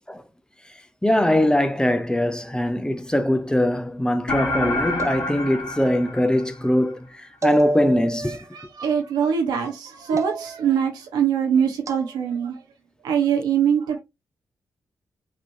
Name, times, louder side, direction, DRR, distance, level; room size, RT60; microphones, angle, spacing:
voice 1, 1.0-8.4, left 1 dB, 10° left, 0.7 m, -22 dB
sound 1, 4.3-6.9, left 2 dB, 55° left, 1.8 m, -28 dB
sound 2, 5.0-5.8 7.4-8.4 10.2-10.8 11.9-12.1, right 1 dB, 45° right, 0.8 m, -28 dB
voice 2, 8.5-12.5 13.0-14.0, right 8 dB, 90° right, 1.0 m, -23 dB
5.9 x 3.0 x 2.7 m
supercardioid pair, 40°, 7 cm